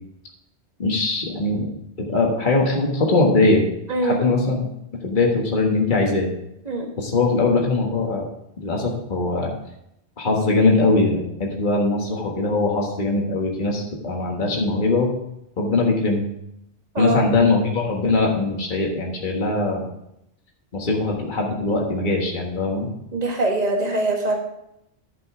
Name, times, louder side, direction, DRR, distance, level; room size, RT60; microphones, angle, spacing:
voice 1, 0.8-1.7 2.0-3.6 4.0-4.7 5.0-6.3 7.0-8.2 8.6-9.5 10.2-15.1 15.6-16.2 17.0-19.8 20.7-22.9, left 3 dB, 45° left, -1 dB, 1.6 m, -21 dB
voice 2, 23.1-24.4, right 2 dB, 40° right, 1 dB, 1.6 m, -22 dB
11.0 x 5.4 x 4.8 m, 0.80 s
omnidirectional pair, 1.1 m